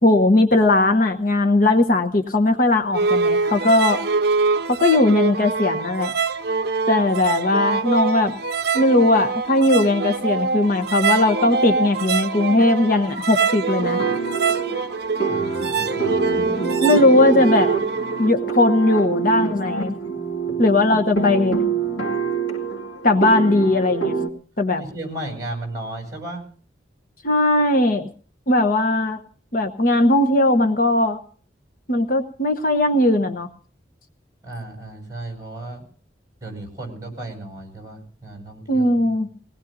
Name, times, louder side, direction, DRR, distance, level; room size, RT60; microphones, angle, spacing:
voice 1, 0.0-4.0 4.7-6.1 6.9-8.4 8.7-14.0 16.8-17.7 18.2-19.9 20.6-21.6 23.0-24.2 24.6-24.8 27.2-28.1 28.5-29.2 29.5-31.2 31.9-33.5 38.7-39.3, left 2 dB, 50° left, 6 dB, 1.0 m, -18 dB
sound 1, 2.9-18.3, right 4 dB, 60° right, 0.7 m, -24 dB
sound 2, 13.8-24.3, right 5 dB, 85° left, 2.3 m, -25 dB
voice 2, 15.1-16.4 24.8-26.4 34.4-35.8 36.4-39.1, right 1 dB, 20° right, 2 dB, 7.9 m, -34 dB
23.0 x 19.0 x 2.7 m, 0.42 s
head